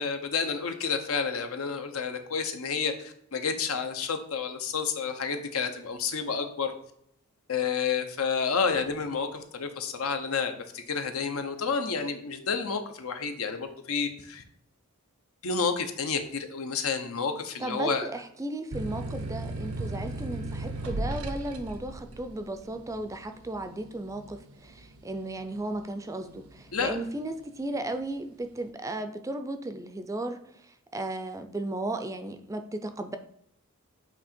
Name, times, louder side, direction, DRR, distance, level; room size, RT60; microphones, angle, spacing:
voice 1, 0.0-6.7 7.5-14.4 15.4-18.1 26.7-27.0, left 5 dB, 80° left, 6 dB, 0.8 m, -30 dB
voice 2, 17.6-30.4 30.9-33.2, right 2 dB, 15° right, 7 dB, 0.4 m, -35 dB
sound 1, 18.7-26.0 26.4-27.1, right 2 dB, 90° right, 0.8 m, -36 dB
8.0 x 2.9 x 4.3 m, 0.71 s
head